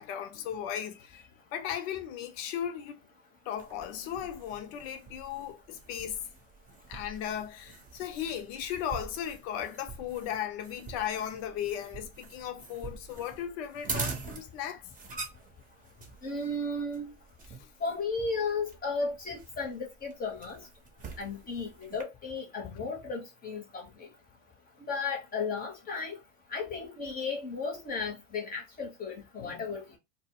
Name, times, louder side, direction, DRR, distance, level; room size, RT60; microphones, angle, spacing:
voice 1, 0.0-3.0 3.5-6.2 6.9-14.9 17.6-17.7 29.4-29.6, left 9 dB, 55° left, 0.7 m, -36 dB
sound 1, 3.6-22.0, right 4 dB, 20° right, 0.8 m, -44 dB
voice 2, 16.2-17.1 17.8-20.6 21.2-23.9 24.8-26.2 26.5-30.0, left 4 dB, 25° left, 0.8 m, -34 dB
2.1 x 2.1 x 3.5 m
hypercardioid pair, 95°, 38 cm